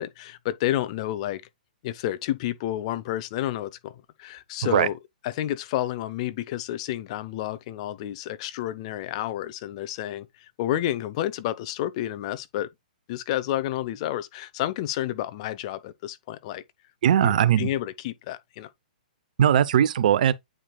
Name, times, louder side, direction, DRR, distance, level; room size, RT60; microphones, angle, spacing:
voice 1, 0.0-1.4 1.8-3.9 4.2-4.9 5.2-12.7 13.1-16.6 17.2-18.7, left 13 dB, 45° left, 0.8 m, -30 dB
voice 2, 17.0-17.7 19.4-20.3, right 9 dB, 60° right, 0.8 m, -19 dB
8.7 x 4.7 x 2.3 m
hypercardioid pair, 130°, 5 cm